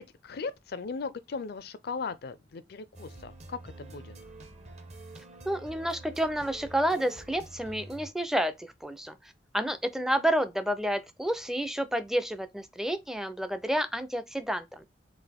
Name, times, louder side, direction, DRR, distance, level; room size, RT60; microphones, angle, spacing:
voice 1, 0.0-4.1, left 4 dB, 60° left, 0.5 m, -38 dB
sound 1, 2.9-8.1, right 2 dB, 40° right, 0.8 m, -47 dB
voice 2, 5.5-9.2 9.5-14.8, right 1 dB, 5° right, 0.4 m, -30 dB
4.0 x 2.5 x 3.5 m
head